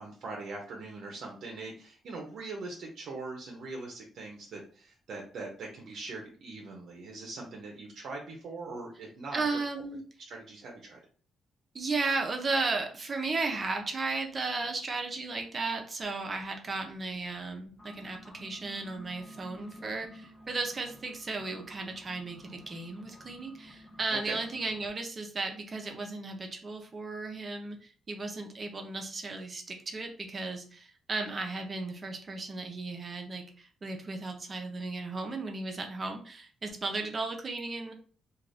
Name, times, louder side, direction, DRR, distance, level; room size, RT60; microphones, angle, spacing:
voice 1, 0.0-9.6 10.3-11.0 24.1-24.4, right 3 dB, 70° right, 0 dB, 0.6 m, -41 dB
voice 2, 9.3-10.0 11.7-37.9, right 3 dB, 35° right, 4 dB, 0.6 m, -35 dB
sound 1, 17.7-24.9, equal, 20° left, 0.6 m, -52 dB
2.5 x 2.4 x 3.3 m, 0.42 s
cardioid pair, 100°, 0 cm